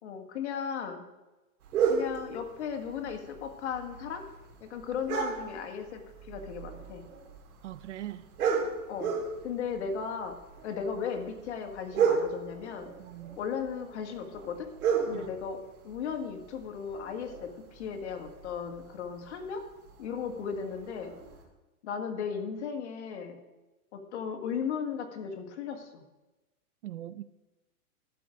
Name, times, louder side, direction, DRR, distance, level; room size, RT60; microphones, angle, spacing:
voice 1, 0.0-1.0 1.9-4.3 4.6-7.1 8.9-9.2 9.4-13.0 13.4-14.7 15.1-19.6 20.0-21.2 21.8-23.4 23.9-26.0, left 6 dB, 50° left, 5 dB, 1.6 m, -36 dB
sound 1, 1.6-21.4, right 6 dB, 75° right, 3.1 m, -35 dB
voice 2, 7.6-8.3 13.0-13.4 15.1-15.3 26.8-27.2, right 13 dB, 55° right, 15 dB, 0.5 m, -41 dB
12.0 x 7.5 x 5.0 m, 1.1 s
hypercardioid pair, 160°, 45 cm